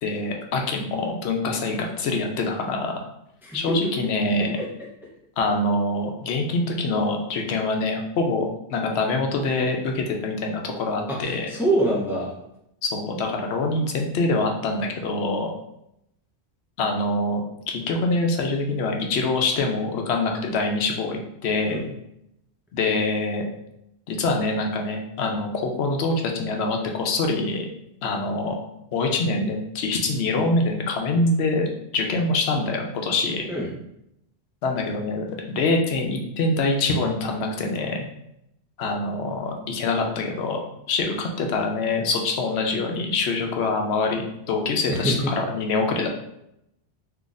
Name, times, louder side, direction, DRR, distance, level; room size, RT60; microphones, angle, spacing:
voice 1, 0.0-2.9 3.5-4.6 5.4-11.5 12.8-15.5 16.8-21.8 22.7-23.4 24.1-27.7 28.0-28.6 28.9-31.6 31.9-33.4 34.6-38.1 38.8-40.6 40.9-46.1, left 3 dB, 75° left, 2 dB, 0.9 m, -25 dB
voice 2, 11.2-12.3 21.7-21.8 33.5-33.7 44.9-45.3, right 1 dB, ahead, -4 dB, 0.5 m, -24 dB
2.9 x 2.4 x 3.9 m, 0.80 s
omnidirectional pair, 1.1 m